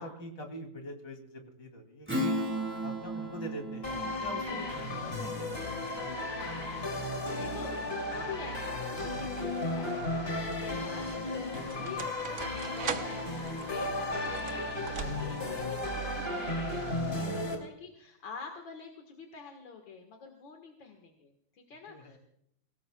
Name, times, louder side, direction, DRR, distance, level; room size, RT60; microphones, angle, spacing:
voice 1, 0.0-2.3 2.8-7.2 10.7-11.0 11.7-11.9 21.9-22.2, equal, 65° left, 4 dB, 3.5 m, -45 dB
Strum, 2.1-7.0, equal, 5° right, 5.0 m, -37 dB
sound 1, 3.8-17.6, left 2 dB, 30° left, 3.0 m, -34 dB
voice 2, 6.4-6.8 7.0-22.2, left 5 dB, 80° left, 3 dB, 2.4 m, -47 dB
sound 2, 8.8-9.3 10.1-15.6, right 6 dB, 50° right, 1.3 m, -42 dB
24.5 x 17.5 x 2.3 m, 0.73 s
omnidirectional pair, 2.1 m